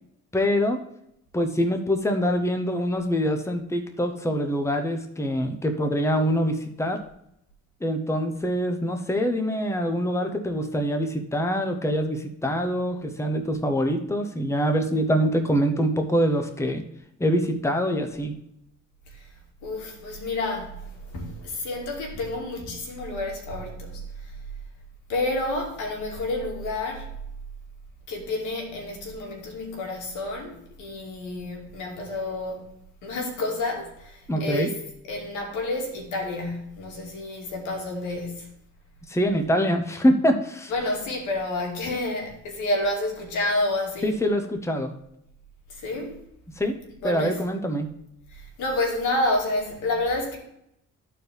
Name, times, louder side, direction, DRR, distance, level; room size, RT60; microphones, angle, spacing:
voice 1, 0.3-0.8 1.3-7.0 7.8-16.8 17.2-18.3 34.3-34.7 39.1-40.7 44.0-44.9 46.5-46.8 47.0-47.9, equal, 10° left, 1.1 m, -24 dB
voice 2, 19.6-24.3 25.1-27.1 28.1-32.7 33.0-34.7 35.1-38.5 40.7-44.1 45.7-46.1 47.0-47.4 48.3-50.4, left 2 dB, 90° left, 2.3 m, -29 dB
13.5 x 4.6 x 3.5 m
cardioid pair, 90°, 30 cm